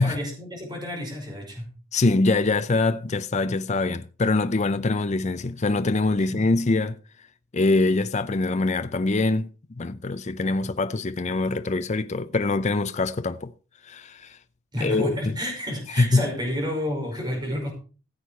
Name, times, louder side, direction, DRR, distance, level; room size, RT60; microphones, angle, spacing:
voice 1, 0.0-1.7 6.2-6.4 14.7-17.7, left 1 dB, 20° right, 5.4 m, -30 dB
voice 2, 1.9-7.0 7.5-9.5 9.8-13.5 13.8-14.4 14.8-15.1 16.0-16.3, left 3 dB, 30° left, 0.5 m, -23 dB
15.5 x 8.1 x 4.4 m
head